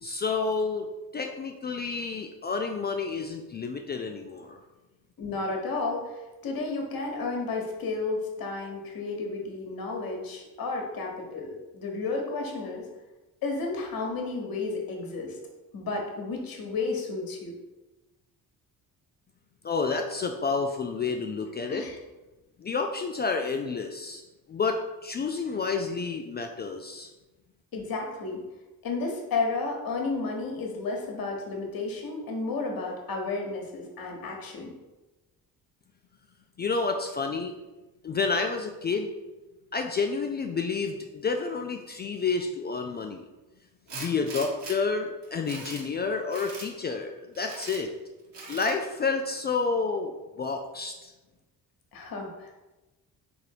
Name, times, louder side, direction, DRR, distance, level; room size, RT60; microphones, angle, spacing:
voice 1, 0.0-4.6 19.6-21.9 22.6-24.2 24.5-27.1 36.6-37.5 38.0-39.1 39.7-43.2 43.9-47.9 48.5-51.1, left 4 dB, 25° left, 4 dB, 0.3 m, -30 dB
voice 2, 5.2-12.8 13.4-15.4 15.7-17.6 21.6-22.0 27.7-28.4 28.8-34.7 51.9-52.5, left 3 dB, 45° left, 1 dB, 1.2 m, -32 dB
Tools, 43.9-44.8 45.2-45.9 46.3-46.7 47.3-47.8 48.3-48.8, right 3 dB, 55° right, 1.3 m, -41 dB
3.7 x 2.9 x 4.6 m, 1.1 s
hypercardioid pair, 45°, 48 cm